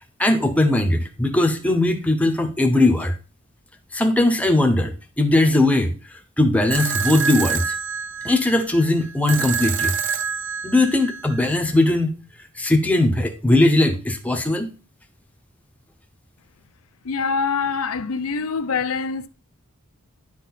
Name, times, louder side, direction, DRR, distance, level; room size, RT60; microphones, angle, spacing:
voice 1, 0.2-3.1 3.9-7.8 8.2-9.9 10.6-12.1 12.5-14.7, left 2 dB, 5° left, 0.8 m, -19 dB
sound 1, 6.7-11.7, right 6 dB, 60° right, 0.6 m, -27 dB
voice 2, 17.0-19.3, left 5 dB, 90° left, 0.6 m, -24 dB
10.0 x 4.1 x 4.1 m
head